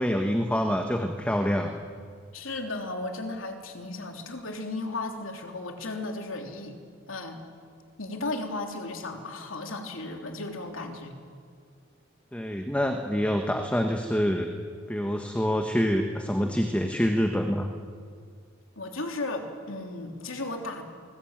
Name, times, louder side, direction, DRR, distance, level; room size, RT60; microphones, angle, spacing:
voice 1, 0.0-1.7 12.3-14.5 14.9-17.7, equal, 5° left, 4 dB, 1.4 m, -26 dB
voice 2, 2.3-6.8 7.1-7.4 8.0-11.1 18.8-20.8, left 2 dB, 80° left, 3 dB, 3.2 m, -35 dB
28.0 x 21.0 x 9.0 m, 2.1 s
head